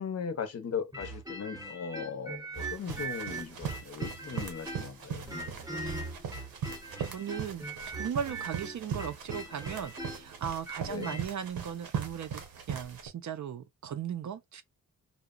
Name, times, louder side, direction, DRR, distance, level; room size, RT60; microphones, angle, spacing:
voice 1, 0.0-5.6 10.8-11.1, left 6 dB, 45° left, 0.6 m, -38 dB
sound 1, 0.9-5.0 5.3-11.2, right 2 dB, 10° right, 0.7 m, -40 dB
sound 2, 2.6-13.1, right 7 dB, 80° right, 0.8 m, -40 dB
voice 2, 7.0-12.4 12.7-14.6, right 8 dB, 55° right, 0.5 m, -37 dB
2.8 x 2.1 x 2.2 m
wide cardioid pair, 140°, 35 cm